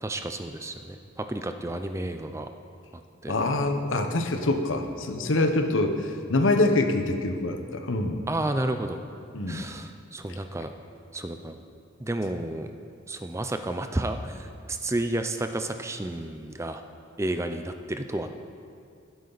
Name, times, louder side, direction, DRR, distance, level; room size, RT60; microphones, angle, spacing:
voice 1, 0.0-2.5 3.2-3.3 8.3-9.0 9.5-10.7 11.1-11.5 12.0-12.7 13.1-16.8 17.2-18.3, right 1 dB, 15° right, 7 dB, 0.5 m, -31 dB
voice 2, 3.3-8.2 9.3-9.6, left 2 dB, 80° left, 6 dB, 1.0 m, -25 dB
16.0 x 9.3 x 4.1 m, 2.4 s
head